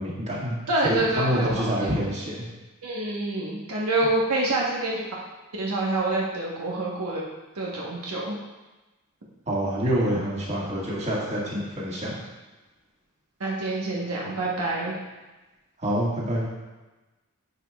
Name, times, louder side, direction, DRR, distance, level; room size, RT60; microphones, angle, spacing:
voice 1, 0.0-0.5 0.8-2.5 9.5-12.2 15.8-16.5, equal, 30° right, -7 dB, 1.8 m, -26 dB
voice 2, 0.7-2.0 2.8-5.0 5.6-7.2 7.5-8.4 13.4-15.0, right 2 dB, 75° right, -4 dB, 1.1 m, -27 dB
10.5 x 4.9 x 2.3 m, 1.1 s
head